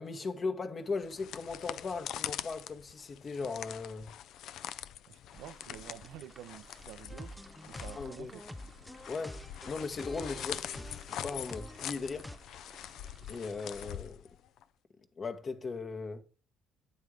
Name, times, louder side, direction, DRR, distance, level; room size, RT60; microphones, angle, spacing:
voice 1, 0.0-4.1 8.0-8.3 9.1-12.3 13.3-14.3 15.2-16.2, left 4 dB, 40° left, 1.0 m, -38 dB
sound 1, 0.9-14.6, left 10 dB, 75° left, 0.4 m, -44 dB
voice 2, 5.1-7.3 7.7-8.4, right 12 dB, 80° right, 0.5 m, -49 dB
sound 2, 5.3-14.0, right 3 dB, 30° right, 0.9 m, -58 dB
sound 3, 7.1-12.4, left 1 dB, 5° left, 0.6 m, -47 dB
9.5 x 3.6 x 4.8 m
supercardioid pair, 80°, 0 cm